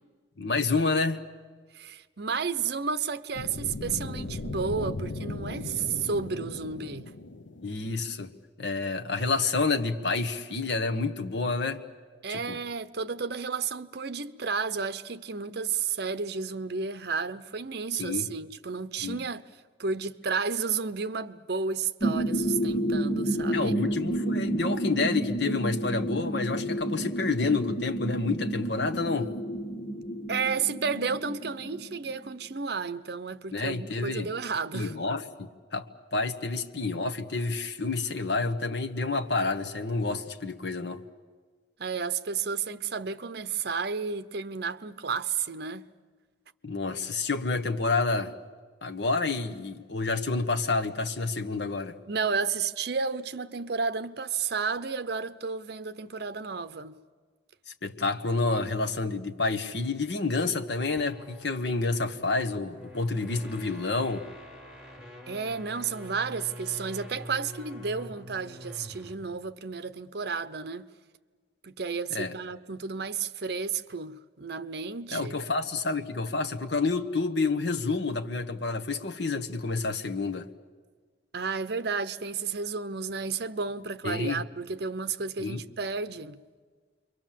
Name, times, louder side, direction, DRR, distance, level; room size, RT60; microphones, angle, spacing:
voice 1, 0.4-1.2 7.6-8.3 8.6-11.8 12.3-12.6 18.0-18.3 19.0-19.2 23.5-29.3 33.5-34.3 34.7-35.9 36.1-41.0 46.6-48.3 48.8-52.0 57.8-64.3 72.1-72.3 75.1-80.5 84.0-84.4 85.4-85.6, left 3 dB, 65° left, 1.3 m, -29 dB
voice 2, 1.7-7.1 12.2-19.5 19.8-23.8 30.3-34.9 41.8-45.9 52.1-57.0 65.3-70.8 71.6-75.4 81.3-86.4, right 5 dB, 60° right, 0.8 m, -32 dB
sound 1, 3.3-8.3, left 2 dB, 85° left, 0.8 m, -37 dB
sound 2, 22.0-32.5, right 1 dB, 35° left, 1.3 m, -30 dB
sound 3, 60.8-69.3, equal, 5° right, 3.4 m, -46 dB
28.5 x 23.5 x 7.5 m
head